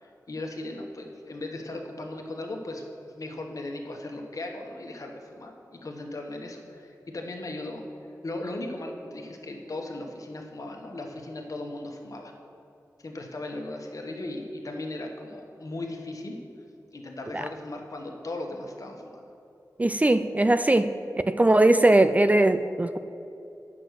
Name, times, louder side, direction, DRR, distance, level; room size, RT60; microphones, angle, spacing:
voice 1, 0.0-7.8 8.2-12.3 13.0-16.4 16.9-19.2, left 2 dB, 55° left, 2 dB, 1.3 m, -37 dB
voice 2, 19.8-20.9 21.3-23.0, right 2 dB, 20° right, 11 dB, 0.3 m, -20 dB
8.8 x 6.2 x 6.4 m, 2.7 s
wide cardioid pair, 80°, 7 cm